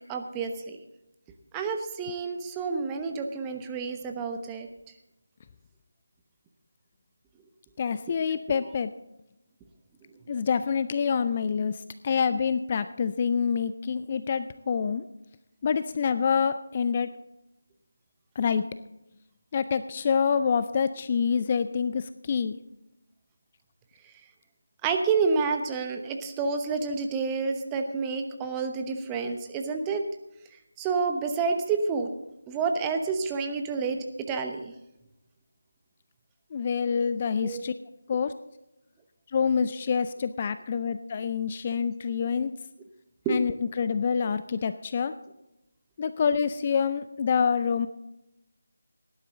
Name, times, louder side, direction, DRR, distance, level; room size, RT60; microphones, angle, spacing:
voice 1, 0.1-0.8 1.5-4.7 24.8-30.0 30.8-32.1 32.5-34.7 37.4-37.6 43.2-43.4, right 4 dB, 10° right, 5 dB, 1.0 m, -29 dB
voice 2, 7.8-8.9 10.3-15.0 15.6-17.1 18.4-18.6 19.5-22.6 36.5-37.7 38.1-38.3 39.3-42.5 43.3-45.1 46.0-47.9, left 6 dB, 30° left, 12 dB, 0.4 m, -26 dB
18.0 x 11.0 x 3.8 m, 0.91 s
figure-of-eight pair, 165°, 0 cm